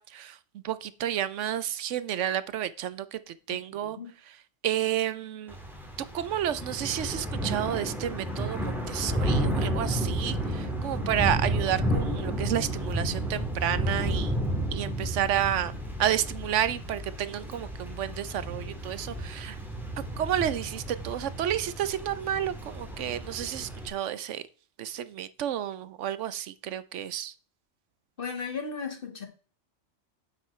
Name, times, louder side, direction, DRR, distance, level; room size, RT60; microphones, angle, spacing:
voice 1, 0.0-4.0 4.6-5.6 6.1-14.3 14.7-15.7 16.0-19.6 20.0-24.4 24.8-27.3, right 11 dB, 80° right, 15 dB, 1.0 m, -31 dB
voice 2, 3.5-4.1 28.2-29.2, left 5 dB, 45° left, 4 dB, 1.8 m, -36 dB
Thunder / Rain, 5.5-23.9, right 1 dB, ahead, 2.0 m, -32 dB
9.3 x 7.6 x 3.2 m, 0.39 s
omnidirectional pair, 1.2 m